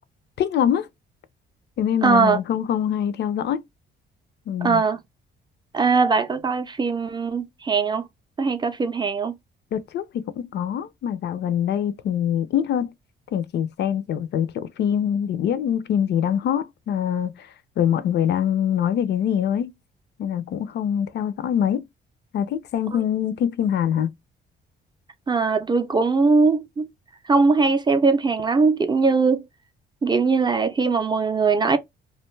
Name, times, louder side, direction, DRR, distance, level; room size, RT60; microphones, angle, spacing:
voice 1, 0.4-0.9 1.8-3.6 4.5-4.8 9.7-12.9 13.3-17.5 17.8-19.7 20.2-21.9 22.3-24.1, left 9 dB, 60° left, 0.4 m, -24 dB
voice 2, 2.0-2.4 4.6-5.0 5.7-8.0 8.4-9.3 22.9-23.0 25.3-26.9 27.3-29.5 30.0-31.8, right 4 dB, 20° right, 0.4 m, -20 dB
2.4 x 2.2 x 3.1 m
cardioid pair, 90°, 20 cm